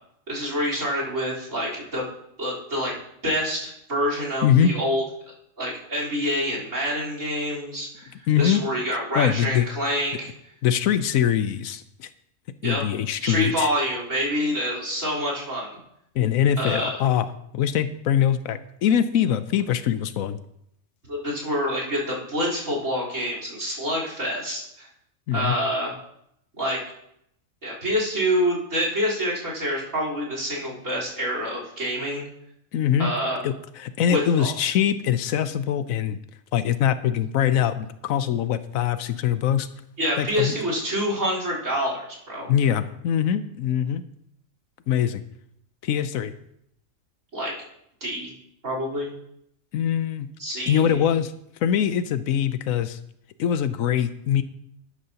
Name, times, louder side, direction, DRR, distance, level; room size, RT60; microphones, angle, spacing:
voice 1, 0.3-2.1 2.4-2.9 3.2-5.0 5.6-8.1 8.4-10.3 12.6-12.8 13.2-15.7 16.6-17.0 21.1-24.9 25.3-26.0 26.6-26.8 27.6-32.3 33.0-33.4 34.1-34.5 40.0-42.5 47.3-47.5 48.0-48.3 48.6-49.1 50.4-51.0, equal, 70° right, -3 dB, 4.3 m, -27 dB
voice 2, 8.3-8.6 9.1-9.7 10.6-12.1 12.6-13.7 16.1-17.3 17.5-20.4 25.3-25.6 32.7-33.1 33.4-36.2 36.5-39.7 40.2-40.5 42.5-44.0 44.9-45.2 45.8-46.3 49.7-50.3 50.7-51.3 51.6-53.0 53.4-54.4, left 9 dB, 85° left, 12 dB, 1.1 m, -23 dB
12.5 x 11.5 x 2.9 m, 0.75 s
omnidirectional pair, 1.4 m